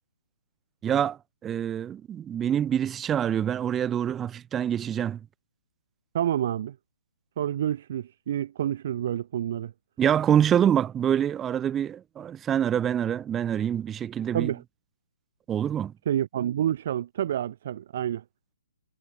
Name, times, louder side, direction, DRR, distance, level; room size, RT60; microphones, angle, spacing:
voice 1, 0.8-5.2 10.0-14.5 15.5-15.9, right 9 dB, 15° right, 1.1 m, -26 dB
voice 2, 6.1-6.7 7.4-9.7 14.3-14.6 16.1-18.2, right 10 dB, 45° right, 2.4 m, -28 dB
figure-of-eight pair, 130°, 0 cm